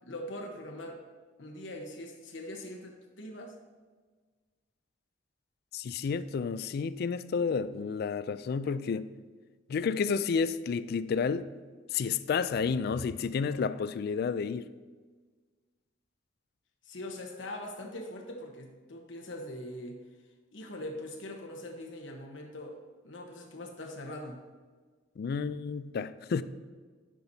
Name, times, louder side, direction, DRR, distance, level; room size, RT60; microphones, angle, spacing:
voice 1, 0.0-1.0 1.4-3.5 16.8-20.0 20.5-24.4, left 1 dB, 90° left, 1.1 m, -42 dB
voice 2, 5.7-9.1 9.7-11.5 11.9-14.7 25.2-26.4, left 5 dB, 55° left, 0.3 m, -31 dB
10.0 x 6.1 x 2.7 m
head